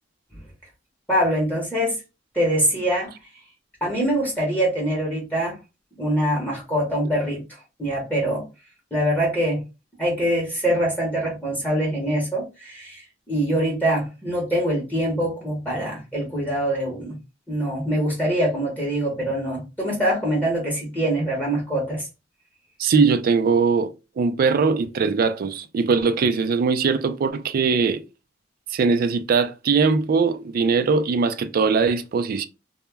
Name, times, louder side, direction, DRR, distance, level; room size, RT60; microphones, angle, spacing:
voice 1, 1.1-2.0 2.3-3.1 3.8-5.6 6.0-7.4 7.8-8.5 8.9-9.6 10.0-17.1 17.5-22.1, right 1 dB, 10° left, 0.8 m, -24 dB
voice 2, 22.8-23.9 24.2-28.0 28.7-32.4, right 5 dB, 50° right, 0.3 m, -21 dB
2.2 x 2.0 x 3.2 m
head